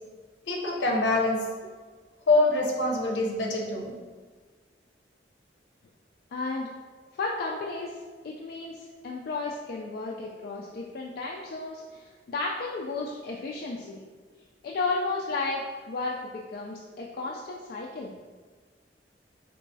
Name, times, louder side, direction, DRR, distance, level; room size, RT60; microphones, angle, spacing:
voice 1, 0.5-1.4 2.3-3.9, left 2 dB, 75° left, 0 dB, 0.7 m, -25 dB
voice 2, 6.3-6.7 7.1-14.0 14.6-18.1, left 3 dB, 55° left, -2 dB, 0.3 m, -33 dB
4.5 x 3.0 x 2.7 m, 1.4 s
head